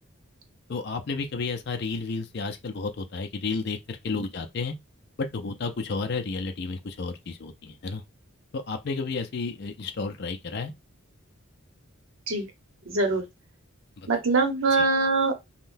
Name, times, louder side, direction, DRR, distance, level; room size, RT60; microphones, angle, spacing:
voice 1, 0.7-4.7 5.2-8.0 8.5-10.7 14.0-14.1 14.7-14.8, left 4 dB, 50° left, 0.4 m, -32 dB
voice 2, 12.9-13.2 14.1-15.5, right 3 dB, 70° right, 0.9 m, -23 dB
3.7 x 2.2 x 2.5 m
head